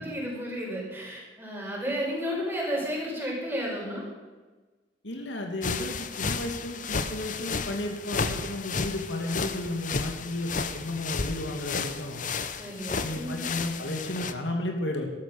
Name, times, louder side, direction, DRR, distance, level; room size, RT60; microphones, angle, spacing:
voice 1, 0.0-4.1 12.6-13.5, equal, 15° right, -3 dB, 5.5 m, -32 dB
voice 2, 5.0-12.3 13.0-15.1, left 1 dB, 85° left, 2 dB, 2.6 m, -33 dB
sound 1, 5.6-14.3, left 5 dB, 45° left, 0.8 m, -33 dB
13.5 x 13.0 x 6.6 m, 1.3 s
head